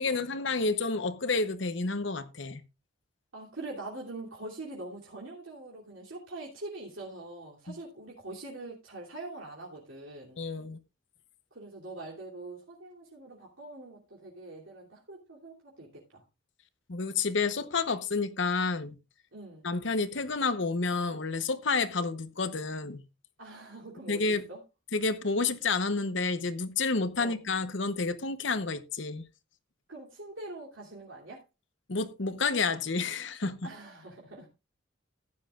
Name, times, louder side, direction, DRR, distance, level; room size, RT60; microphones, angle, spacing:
voice 1, 0.0-2.6 7.7-7.8 10.4-10.8 16.9-19.0 19.6-23.0 24.1-24.4 24.9-29.3 31.9-33.7, left 4 dB, 65° left, 0.9 m, -30 dB
voice 2, 3.3-10.4 11.5-16.2 19.3-19.7 23.4-24.6 27.2-27.4 29.9-31.4 33.6-34.5, right 2 dB, 80° right, 2.9 m, -44 dB
15.0 x 9.9 x 2.4 m
head